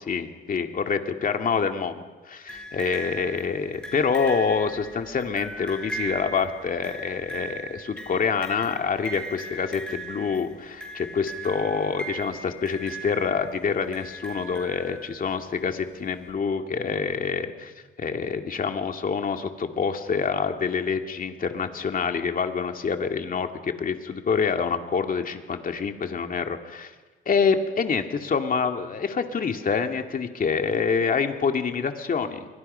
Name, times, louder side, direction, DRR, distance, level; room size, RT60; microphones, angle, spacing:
voice 1, 0.1-17.7 18.0-26.9 27.3-32.5, left 5 dB, 45° left, 5 dB, 2.4 m, -26 dB
sound 1, 2.5-15.3 16.3-16.4, right 2 dB, 5° left, 6.6 m, -39 dB
29.5 x 23.5 x 5.7 m, 1.3 s
cardioid pair, 90°, 20 cm